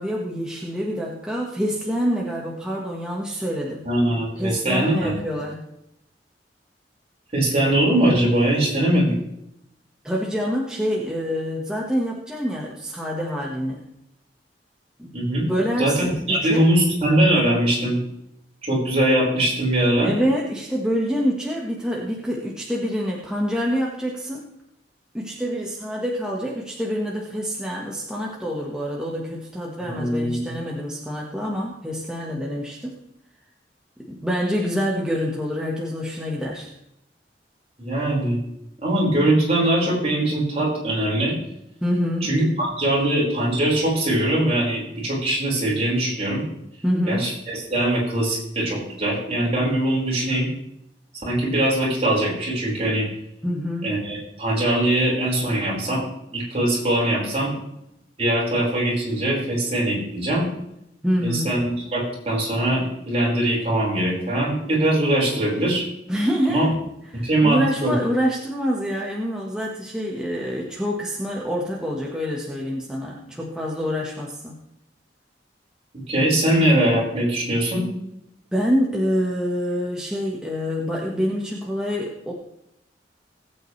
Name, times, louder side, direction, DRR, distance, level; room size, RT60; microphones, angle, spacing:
voice 1, 0.0-3.8 4.4-5.6 10.0-13.8 15.0-16.7 20.0-24.4 25.1-33.0 34.1-36.7 41.8-42.3 46.8-47.3 53.4-53.9 61.0-61.6 66.1-66.7 67.1-74.6 78.5-82.3, equal, 5° right, -3 dB, 1.5 m, -26 dB
voice 2, 3.8-5.1 7.3-9.1 15.1-15.5 15.8-18.0 18.6-20.1 29.9-30.5 37.8-38.4 38.8-41.3 42.2-46.4 47.1-50.5 51.2-53.1 53.8-56.0 56.3-57.5 58.2-60.4 61.2-65.8 66.5-66.7 67.2-67.9 76.1-77.8, right 1 dB, 35° right, -5 dB, 5.2 m, -21 dB
19.5 x 8.5 x 3.3 m, 0.81 s
head